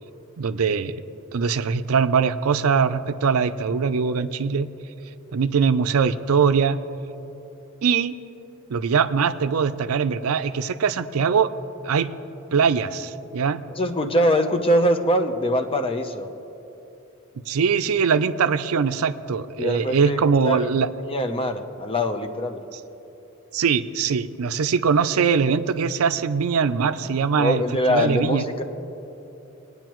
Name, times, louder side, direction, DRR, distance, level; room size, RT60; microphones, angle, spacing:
voice 1, 0.4-1.0 1.3-4.7 5.3-6.8 7.8-8.2 8.7-11.5 11.8-12.1 12.5-13.6 17.5-20.9 22.7-22.8 23.5-27.6 27.9-28.5, right 6 dB, 85° right, 12 dB, 0.5 m, -22 dB
voice 2, 13.7-16.3 19.6-20.7 21.0-22.6 27.4-28.6, equal, 25° left, 7 dB, 0.7 m, -23 dB
22.5 x 9.5 x 3.0 m, 2.9 s
head